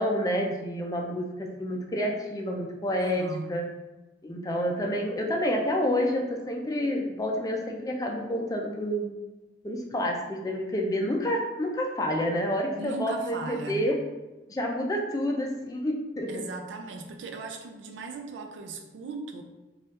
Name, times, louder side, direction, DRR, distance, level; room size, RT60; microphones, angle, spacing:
voice 1, 0.0-3.6 4.2-9.1 9.6-14.0 14.5-16.4, equal, 20° left, 0 dB, 0.3 m, -29 dB
voice 2, 3.0-3.6 12.8-13.9 16.3-19.4, right 3 dB, 90° right, 4 dB, 0.4 m, -38 dB
3.1 x 2.3 x 2.8 m, 1.1 s
head